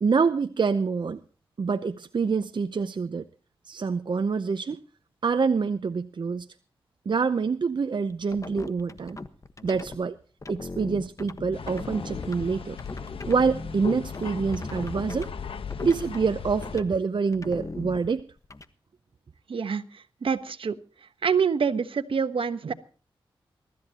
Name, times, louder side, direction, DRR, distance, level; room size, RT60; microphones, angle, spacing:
voice 1, 0.0-1.2 1.6-3.2 3.7-4.8 5.2-6.5 7.1-9.2 9.6-10.2 10.5-12.8 13.3-15.3 15.8-18.2, right 5 dB, 55° right, 0.7 m, -26 dB
sound 1, 8.1-10.0 10.4-15.3 15.7-16.3 16.6-16.9 17.3-18.6, left 3 dB, 35° left, 1.3 m, -39 dB
sound 2, 11.5-16.8, left 6 dB, 80° left, 1.1 m, -37 dB
voice 2, 19.5-20.8 21.2-22.7, right 6 dB, 75° right, 1.2 m, -26 dB
23.5 x 13.5 x 2.9 m
cardioid pair, 60°, 9 cm